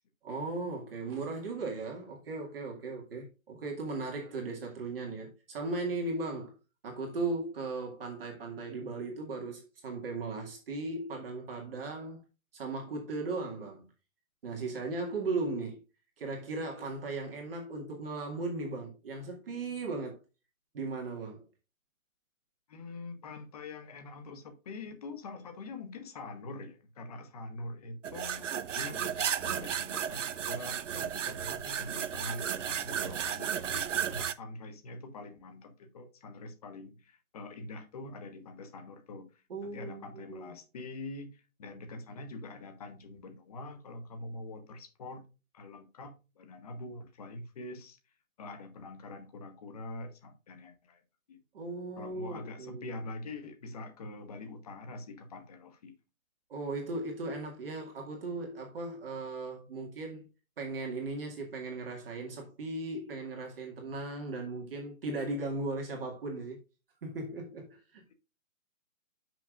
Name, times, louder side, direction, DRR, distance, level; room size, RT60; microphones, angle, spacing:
voice 1, 0.2-6.5 6.8-12.2 12.5-13.9 14.4-15.8 16.2-20.2 20.7-21.4 39.5-40.5 51.5-52.9 56.5-60.3 60.6-66.6 67.0-68.0, right 3 dB, 40° right, 2.1 m, -37 dB
voice 2, 22.7-45.2 45.5-48.0 48.4-51.0 51.3-51.4 52.0-56.0, left 2 dB, 25° left, 1.1 m, -44 dB
sound 1, 28.0-34.3, right 8 dB, 60° right, 0.7 m, -34 dB
10.5 x 6.1 x 2.4 m
hypercardioid pair, 160°, 42 cm